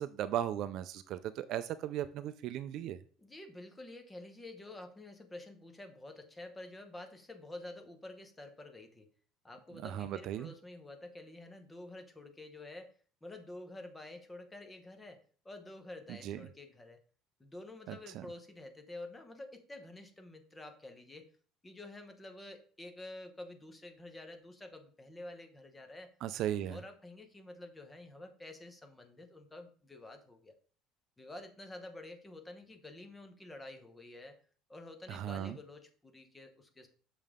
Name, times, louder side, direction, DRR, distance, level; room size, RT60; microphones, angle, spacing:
voice 1, 0.0-3.0 9.8-10.5 16.2-16.4 17.9-18.3 26.2-26.8 35.1-35.6, right 11 dB, 50° right, 13 dB, 0.3 m, -37 dB
voice 2, 3.2-9.1 9.4-12.9 13.2-17.0 17.4-21.2 21.6-26.1 26.7-30.5 31.2-34.4 34.7-36.9, left 2 dB, 10° left, 6 dB, 0.9 m, -49 dB
6.6 x 5.3 x 3.6 m, 0.43 s
cardioid pair, 165°, 0 cm